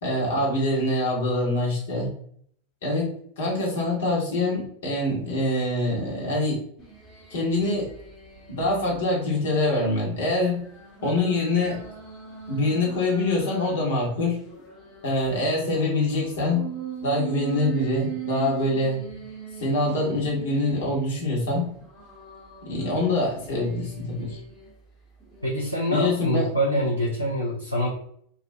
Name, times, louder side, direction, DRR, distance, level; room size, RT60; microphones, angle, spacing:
voice 1, 0.0-2.1 2.8-3.1 3.4-6.6 7.3-7.8 8.5-10.6 11.0-11.8 12.5-14.4 15.0-16.7 17.0-19.0 19.6-21.7 22.6-24.4 25.9-26.5, left 2 dB, 60° left, -3 dB, 1.2 m, -24 dB
sound 1, 6.8-8.8 9.3-13.8 14.3-21.3 21.8-24.7 25.2-25.5, right 8 dB, 15° left, 1.2 m, -40 dB
voice 2, 25.4-27.9, equal, 90° left, -4 dB, 0.5 m, -25 dB
2.5 x 2.3 x 2.6 m, 0.62 s
figure-of-eight pair, 90°, 0 cm